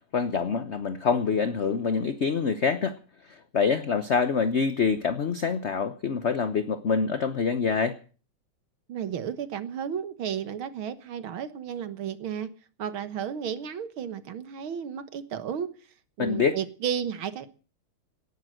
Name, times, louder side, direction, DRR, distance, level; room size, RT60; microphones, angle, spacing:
voice 1, 0.1-3.0 3.2-8.0 16.2-16.6, left 5 dB, 50° left, 11 dB, 0.9 m, -26 dB
voice 2, 8.9-12.5 12.8-15.7 16.2-17.5, right 8 dB, 75° right, 12 dB, 2.1 m, -33 dB
18.5 x 11.0 x 6.5 m, 0.39 s
omnidirectional pair, 2.3 m